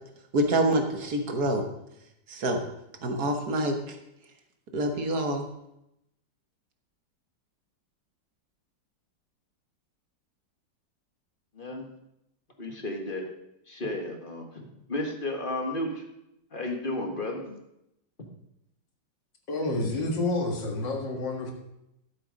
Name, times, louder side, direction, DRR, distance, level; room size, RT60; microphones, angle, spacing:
voice 1, 0.3-1.6 2.3-2.6 3.0-4.0 4.7-5.5, right 1 dB, 60° right, 4 dB, 1.8 m, -26 dB
voice 2, 11.5-11.9 12.6-13.2 13.7-16.0 16.5-17.6, left 1 dB, 30° left, 2 dB, 1.6 m, -33 dB
voice 3, 19.5-21.5, left 2 dB, 80° left, 1 dB, 2.4 m, -29 dB
12.0 x 7.9 x 5.2 m, 0.83 s
omnidirectional pair, 1.9 m